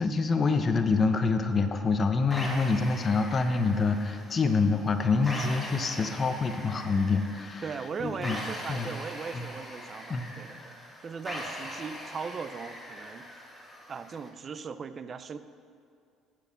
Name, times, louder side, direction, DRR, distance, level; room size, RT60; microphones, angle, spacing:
voice 1, 0.0-7.6 8.0-8.4 8.7-8.9 9.3-9.4 10.1-10.3, left 4 dB, 35° left, 7 dB, 0.7 m, -26 dB
sound 1, 2.3-14.3, left 1 dB, 10° left, 1.9 m, -41 dB
voice 2, 7.6-10.7 11.0-13.3 13.9-15.4, right 5 dB, 40° right, 12 dB, 0.4 m, -38 dB
10.5 x 4.8 x 6.9 m, 2.4 s
cardioid pair, 100°, 0 cm